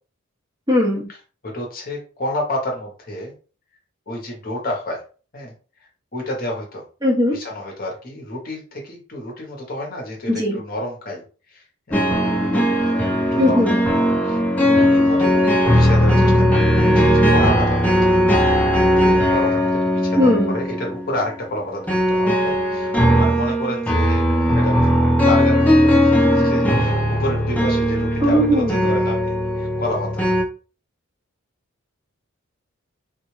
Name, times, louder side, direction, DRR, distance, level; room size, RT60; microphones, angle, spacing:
voice 1, 0.7-1.1 7.0-7.4 10.3-10.6 13.4-13.8 20.2-20.5 28.2-28.9, equal, 20° right, -2 dB, 0.9 m, -18 dB
voice 2, 1.4-3.3 4.1-5.0 5.3-5.5 5.8-6.8 7.3-13.8 14.2-18.1 19.0-30.2, left 1 dB, 40° left, 1 dB, 0.8 m, -30 dB
sound 1, 11.9-30.4, equal, 5° left, 0.6 m, -18 dB
3.6 x 2.3 x 3.1 m, 0.37 s
head